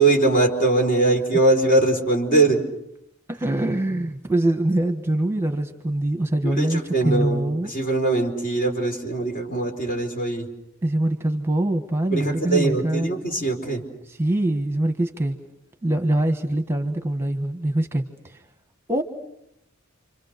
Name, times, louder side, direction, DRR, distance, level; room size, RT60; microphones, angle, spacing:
voice 1, 0.0-2.6 6.4-10.5 12.1-13.8, right 2 dB, 45° left, 3 dB, 4.5 m, -21 dB
voice 2, 3.3-7.7 10.8-13.1 14.1-15.4 15.8-18.4 18.9-19.0, right 1 dB, 10° right, 6 dB, 1.4 m, -24 dB
30.0 x 26.0 x 6.7 m, 0.81 s
head